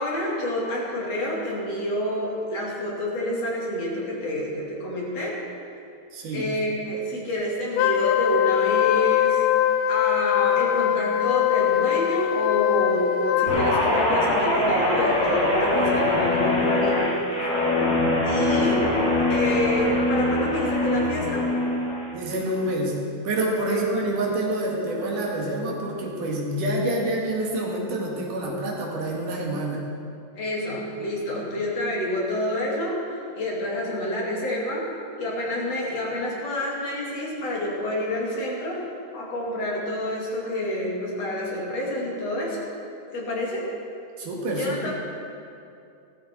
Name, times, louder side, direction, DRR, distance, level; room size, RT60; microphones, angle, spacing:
voice 1, 0.0-5.4 6.3-9.5 9.9-17.1 18.2-18.8 19.3-21.5 23.7-23.8 30.4-34.9 35.2-38.8 39.1-42.6 43.1-43.7 44.5-44.9, left 1 dB, 50° left, -4 dB, 3.5 m, -28 dB
voice 2, 6.1-6.5 22.1-29.8 44.2-44.9, right 1 dB, 75° right, -2 dB, 3.3 m, -27 dB
Wind instrument woodwind instrument, 7.7-14.1, left 10 dB, 85° left, 2.2 m, -22 dB
Guitar, 13.5-22.1 22.4-22.8, left 2 dB, 30° left, 3.1 m, -23 dB
17.0 x 13.5 x 4.5 m, 2.5 s
omnidirectional pair, 3.7 m